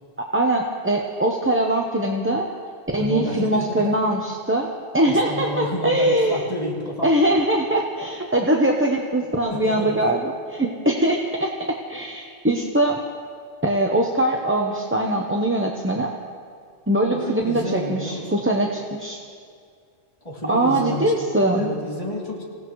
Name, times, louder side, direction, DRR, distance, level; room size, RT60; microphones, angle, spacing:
voice 1, 0.2-2.5 2.9-4.7 4.9-6.5 7.0-13.0 13.6-16.1 16.9-19.2 20.5-21.7, right 1 dB, 10° right, 0 dB, 0.8 m, -22 dB
voice 2, 2.9-4.0 5.0-7.1 9.5-10.0 17.1-18.4 20.2-21.3 21.5-22.4, left 1 dB, 30° left, -4 dB, 2.9 m, -30 dB
26.5 x 17.0 x 3.1 m, 2.2 s
omnidirectional pair, 1.1 m